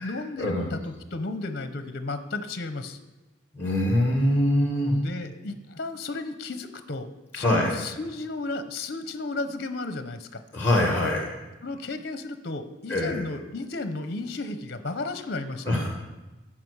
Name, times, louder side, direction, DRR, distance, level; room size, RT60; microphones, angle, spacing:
voice 1, 0.0-3.0 5.0-7.1 7.3-10.4 11.6-15.8, left 2 dB, 50° left, 10 dB, 0.8 m, -33 dB
voice 2, 3.5-4.9 7.3-7.7 10.5-11.3 12.9-13.1 15.6-15.9, left 1 dB, 10° left, 0 dB, 1.7 m, -23 dB
12.0 x 5.7 x 8.1 m, 1.1 s
head